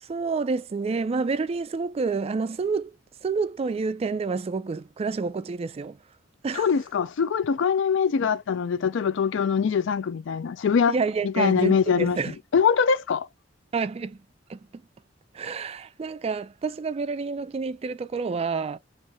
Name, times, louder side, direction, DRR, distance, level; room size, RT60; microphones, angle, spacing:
voice 1, 0.0-2.9 3.2-6.0 6.4-6.7 10.9-12.4 13.7-14.6 15.3-18.8, right 4 dB, 30° right, 0.3 m, -28 dB
voice 2, 6.5-10.9 11.2-12.2 12.5-13.3, left 6 dB, 65° left, 0.4 m, -23 dB
3.2 x 3.0 x 4.6 m
head